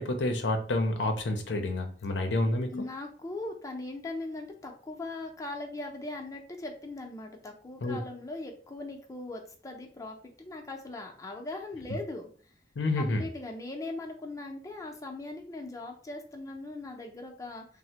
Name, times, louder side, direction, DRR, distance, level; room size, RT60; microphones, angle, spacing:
voice 1, 0.0-2.9 7.8-8.0 12.8-13.2, left 2 dB, 90° left, 6 dB, 0.5 m, -29 dB
voice 2, 2.7-12.3 13.0-17.8, left 2 dB, 20° left, 2 dB, 0.5 m, -40 dB
3.2 x 2.0 x 2.8 m, 0.43 s
head